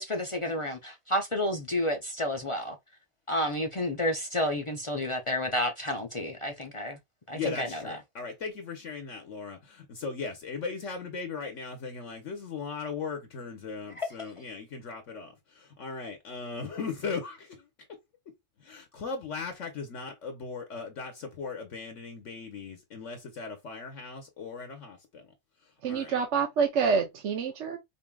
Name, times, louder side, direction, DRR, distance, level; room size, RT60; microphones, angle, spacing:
voice 1, 0.0-2.8 3.3-7.0 7.3-8.0 14.0-14.1, left 1 dB, 50° left, 0.3 m, -30 dB
voice 2, 7.3-17.7 18.6-25.3 25.9-26.2, left 5 dB, 65° left, 1.2 m, -38 dB
voice 3, 25.8-27.8, right 6 dB, 60° right, 1.0 m, -27 dB
5.3 x 2.7 x 2.3 m
omnidirectional pair, 1.4 m